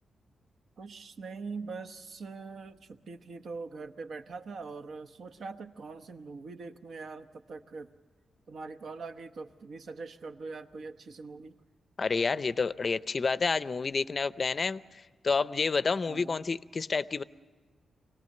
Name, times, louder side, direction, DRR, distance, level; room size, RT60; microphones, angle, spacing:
voice 1, 0.8-7.9 8.5-11.5 16.1-16.4, right 4 dB, 65° right, 7 dB, 1.0 m, -42 dB
voice 2, 12.0-14.8 15.2-17.2, left 4 dB, 40° left, 15 dB, 0.5 m, -29 dB
25.0 x 18.0 x 6.6 m, 1.4 s
wide cardioid pair, 125°, 0 cm